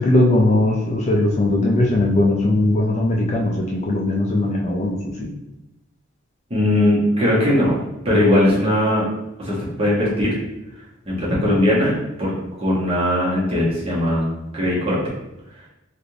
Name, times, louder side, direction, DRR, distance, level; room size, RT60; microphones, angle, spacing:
voice 1, 0.0-5.3, left 2 dB, 35° left, -1 dB, 0.4 m, -19 dB
voice 2, 6.5-7.8 8.0-9.0 9.4-10.3 11.1-11.9 12.2-12.3 12.6-14.2 14.5-15.0, left 1 dB, 30° right, -7 dB, 1.1 m, -19 dB
3.3 x 2.5 x 2.7 m, 0.93 s
head